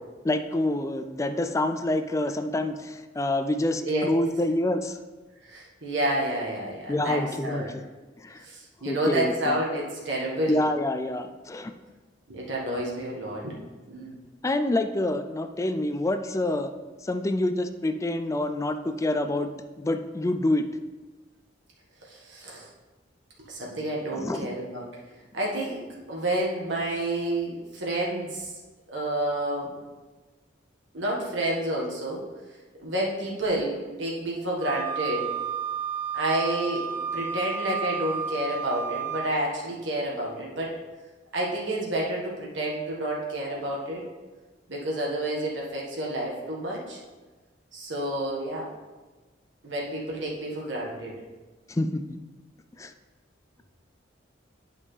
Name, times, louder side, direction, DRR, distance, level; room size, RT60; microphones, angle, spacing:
voice 1, 0.2-5.0 6.9-7.8 8.2-8.4 8.9-9.6 10.5-11.7 14.4-16.7 17.0-20.7 24.1-24.5 51.7-52.0 52.8-52.9, left 1 dB, 15° left, 8 dB, 0.3 m, -27 dB
voice 2, 5.4-7.7 8.4-10.6 12.3-13.6 13.9-14.2 22.0-22.7 23.4-24.8 25.3-25.8 26.1-28.5 28.9-29.7 30.9-32.2 32.8-35.3 36.1-36.9 37.1-40.8 41.3-44.0 44.7-47.0 47.7-48.7 49.6-51.2, right 1 dB, 70° right, -3 dB, 1.5 m, -29 dB
Wind instrument woodwind instrument, 34.6-39.3, right 6 dB, 55° right, 2.0 m, -32 dB
9.7 x 5.4 x 3.3 m, 1.3 s
head